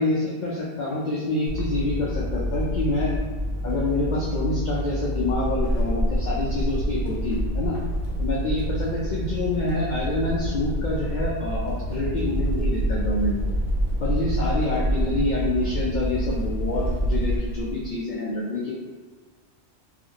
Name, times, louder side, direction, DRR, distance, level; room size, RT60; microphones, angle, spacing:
voice 1, 0.0-3.2 3.6-7.8 8.2-13.4 14.0-18.7, left 2 dB, 75° left, -5 dB, 0.4 m, -27 dB
sound 1, 1.5-17.4, equal, 75° right, 0.4 m, -28 dB
Walk footsteps / Squeak, 5.3-18.0, equal, 60° left, 0.8 m, -32 dB
2.5 x 2.4 x 2.8 m, 1.4 s
omnidirectional pair, 1.3 m